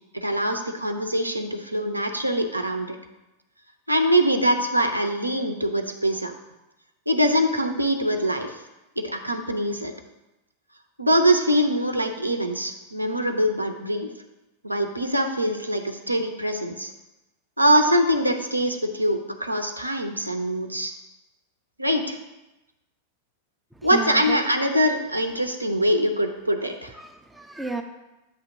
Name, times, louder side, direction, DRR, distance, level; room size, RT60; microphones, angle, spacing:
voice 1, 0.1-3.0 3.9-6.3 7.1-8.6 9.0-9.9 11.0-14.1 14.6-16.9 17.6-20.9 21.8-22.2 23.8-26.9, equal, 85° right, 5 dB, 0.6 m, -23 dB
voice 2, 23.7-24.4 26.9-27.8, right 4 dB, 5° right, 5 dB, 0.5 m, -33 dB
8.2 x 2.9 x 6.0 m, 1.0 s
figure-of-eight pair, 90°, 0 cm